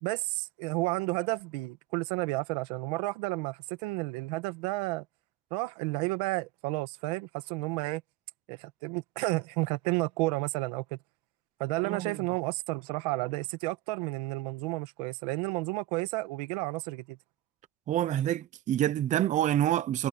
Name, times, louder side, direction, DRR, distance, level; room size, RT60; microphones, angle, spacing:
voice 1, 0.0-5.0 5.5-8.0 8.5-11.0 11.6-17.2, right 23 dB, 80° right, 1.6 m, -32 dB
voice 2, 17.9-20.1, right 12 dB, 40° right, 0.8 m, -27 dB
supercardioid pair, 125°, 20 cm